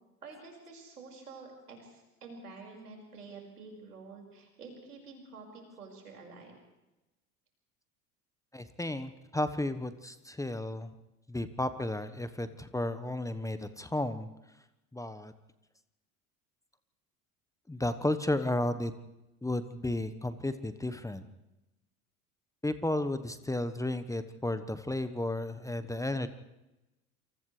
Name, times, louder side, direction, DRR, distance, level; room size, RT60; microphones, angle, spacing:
voice 1, 0.2-6.6, right 4 dB, 85° right, 1 dB, 5.3 m, -49 dB
voice 2, 8.5-10.9 11.3-14.3 14.9-15.3 17.7-18.9 19.4-21.2 22.6-26.3, left 1 dB, 5° left, 11 dB, 1.1 m, -33 dB
28.5 x 27.5 x 3.3 m, 1.0 s
figure-of-eight pair, 70°, 44 cm